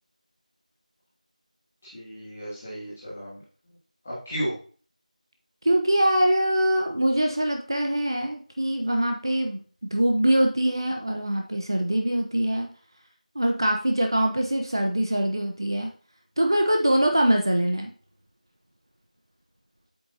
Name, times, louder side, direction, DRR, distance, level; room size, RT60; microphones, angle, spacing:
voice 1, 1.8-3.4 4.0-4.5, equal, 10° left, -10 dB, 2.2 m, -34 dB
voice 2, 5.6-9.6 9.9-12.7 13.3-15.9 16.4-17.9, right 1 dB, 35° right, 3 dB, 0.9 m, -23 dB
9.2 x 8.5 x 2.8 m, 0.42 s
figure-of-eight pair, 180°, 4 cm